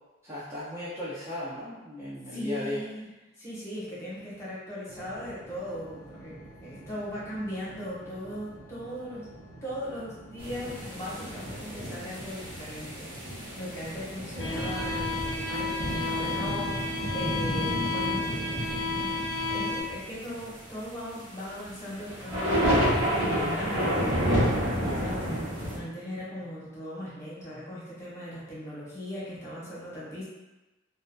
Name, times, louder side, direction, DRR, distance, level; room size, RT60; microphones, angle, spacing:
voice 1, 0.2-2.8 24.8-25.1, left 1 dB, 15° right, -11 dB, 0.5 m, -36 dB
voice 2, 2.3-3.1 3.4-9.3 9.6-18.3 18.9-24.2 25.0-25.5 25.8-30.2, equal, 15° left, -9 dB, 0.8 m, -38 dB
sound 1, 4.9-19.2, right 1 dB, 90° right, 0.5 m, -49 dB
sound 2, 10.4-25.8, equal, 70° right, 1.0 m, -30 dB
sound 3, 14.4-19.8, left 3 dB, 70° left, 0.5 m, -32 dB
2.6 x 2.2 x 2.2 m, 1.1 s
head